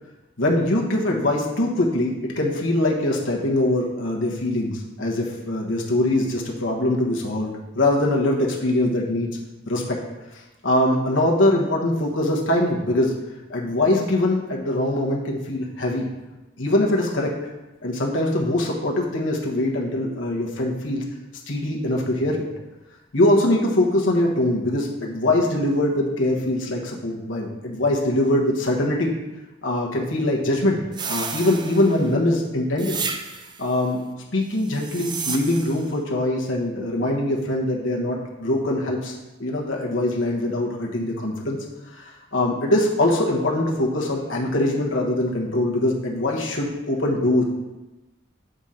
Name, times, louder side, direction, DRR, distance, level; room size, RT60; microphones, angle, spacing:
voice 1, 0.4-9.3 9.7-10.0 10.6-13.1 13.5-16.1 16.6-17.3 17.8-21.0 21.5-22.4 23.1-29.1 29.6-30.8 31.1-33.0 33.6-34.0 34.3-41.6 41.9-47.4, left 1 dB, 85° left, -1 dB, 1.2 m, -22 dB
sound 1, 30.9-32.1 32.8-33.7 34.6-35.9, right 5 dB, 20° right, 0.4 m, -32 dB
8.0 x 3.8 x 4.3 m, 1.1 s
head